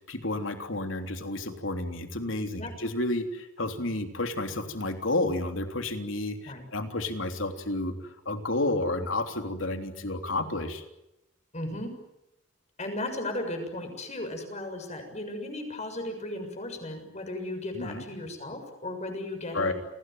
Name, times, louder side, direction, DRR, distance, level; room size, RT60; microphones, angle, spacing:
voice 1, 0.1-10.8 17.7-18.0 19.5-19.7, left 2 dB, 85° left, 6 dB, 3.4 m, -31 dB
voice 2, 11.5-11.9 12.8-19.7, left 1 dB, 35° left, 5 dB, 7.0 m, -35 dB
29.5 x 20.5 x 9.4 m, 0.89 s
head